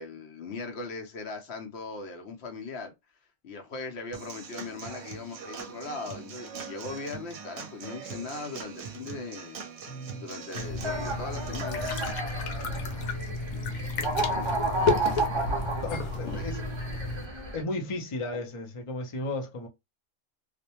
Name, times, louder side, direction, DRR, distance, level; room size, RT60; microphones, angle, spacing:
voice 1, 0.0-2.9 3.4-9.6 10.1-11.9 12.6-13.1 13.5-16.4, left 3 dB, 60° left, 0.8 m, -40 dB
Human voice / Acoustic guitar / Drum, 4.1-12.1, right 5 dB, 65° right, 0.8 m, -42 dB
voice 2, 9.9-10.3 15.8-16.7 17.5-19.7, left 2 dB, 45° left, 0.4 m, -35 dB
sound 1, 10.5-17.3, left 4 dB, 90° left, 1.0 m, -32 dB
sound 2, 10.8-17.6, right 2 dB, 35° right, 0.4 m, -32 dB
2.5 x 2.1 x 2.8 m
omnidirectional pair, 1.4 m